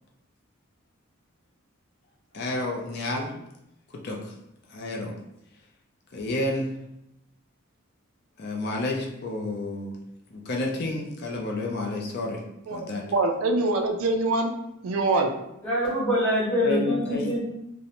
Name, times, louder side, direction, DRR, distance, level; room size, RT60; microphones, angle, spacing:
voice 1, 2.3-3.4 4.0-4.3 4.7-5.1 6.1-6.7 8.4-9.9 10.3-12.4 12.7-13.0 16.6-17.4, left 2 dB, 50° left, 0 dB, 0.4 m, -30 dB
voice 2, 12.7-14.5 14.8-15.3, right 2 dB, 70° right, 5 dB, 0.3 m, -24 dB
voice 3, 15.6-17.4, equal, 5° left, -7 dB, 0.7 m, -24 dB
2.5 x 2.1 x 2.8 m, 0.85 s
head